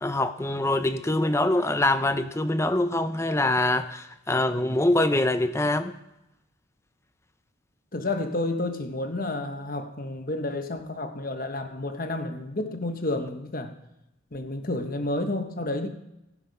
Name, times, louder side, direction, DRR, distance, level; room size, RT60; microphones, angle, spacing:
voice 1, 0.0-6.0, left 2 dB, 15° left, 10 dB, 0.5 m, -24 dB
voice 2, 7.9-13.7 14.3-15.9, left 2 dB, 40° left, 6 dB, 1.1 m, -30 dB
15.5 x 5.8 x 5.4 m, 0.90 s
head